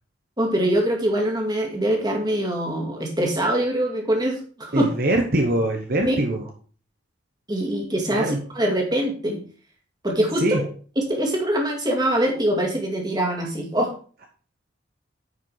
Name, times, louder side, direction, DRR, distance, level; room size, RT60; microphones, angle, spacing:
voice 1, 0.4-4.9 6.1-6.2 7.5-9.4 10.0-10.7 11.0-13.9, right 1 dB, 20° right, 1 dB, 2.1 m, -23 dB
voice 2, 4.7-6.4 8.1-8.4 10.4-10.6, right 1 dB, 50° right, 3 dB, 1.0 m, -23 dB
9.5 x 5.2 x 4.7 m, 0.40 s
head